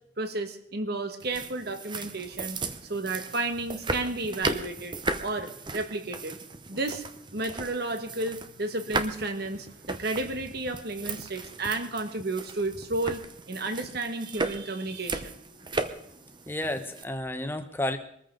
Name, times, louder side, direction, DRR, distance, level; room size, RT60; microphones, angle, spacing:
voice 1, 0.2-2.6 2.9-5.0 5.2-6.4 6.7-7.0 7.3-13.2 13.5-15.4, right 2 dB, 55° right, 8 dB, 1.6 m, -32 dB
sound 1, 1.2-17.0, right 3 dB, 25° right, 0.8 m, -36 dB
voice 2, 16.5-18.0, left 1 dB, 10° left, 8 dB, 1.1 m, -31 dB
22.5 x 14.0 x 3.9 m, 0.66 s
head